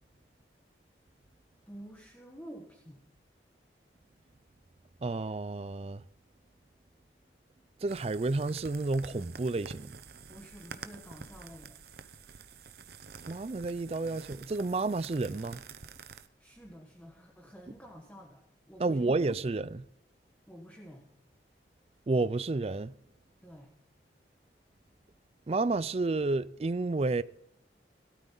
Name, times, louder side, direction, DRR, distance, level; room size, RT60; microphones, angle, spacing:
voice 1, 1.7-3.0 10.3-11.8 16.4-19.3 20.5-21.1 23.4-23.7, equal, 10° left, 1.4 m, -50 dB
voice 2, 5.0-6.0 7.8-9.9 13.3-15.6 18.8-19.8 22.1-22.9 25.5-27.2, right 3 dB, 35° right, 0.4 m, -30 dB
sound 1, 7.9-16.3, right 5 dB, 60° right, 0.8 m, -49 dB
17.5 x 12.5 x 3.9 m
head